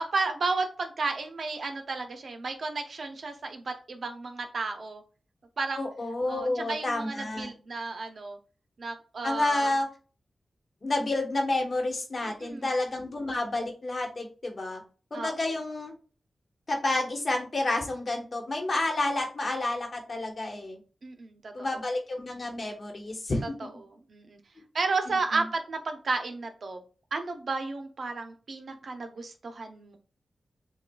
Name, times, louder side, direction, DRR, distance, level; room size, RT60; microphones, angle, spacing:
voice 1, 0.0-5.0 5.6-5.9 6.3-8.4 8.8-9.7 12.4-12.7 15.1-15.3 21.0-21.8 23.8-24.4 24.7-26.8 27.1-30.0, right 3 dB, 70° right, 5 dB, 0.7 m, -33 dB
voice 2, 5.7-7.5 9.2-9.9 10.8-14.8 15.1-15.9 16.7-20.8 21.5-23.4 25.1-25.5, left 2 dB, 50° left, 2 dB, 1.1 m, -30 dB
7.0 x 2.4 x 2.3 m, 0.37 s
cardioid pair, 55°, 0 cm